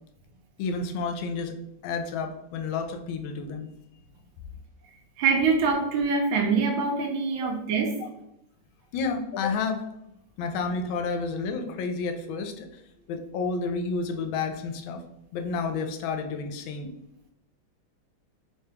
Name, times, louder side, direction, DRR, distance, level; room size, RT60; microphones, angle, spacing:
voice 1, 0.6-1.6 1.8-3.7 7.4-7.5 8.9-9.9 10.4-12.8 13.1-15.0 15.3-16.9, left 4 dB, 90° left, 5 dB, 1.4 m, -30 dB
voice 2, 5.2-7.9, right 4 dB, 90° right, 0 dB, 1.4 m, -24 dB
3.7 x 2.8 x 3.4 m, 0.83 s
omnidirectional pair, 2.1 m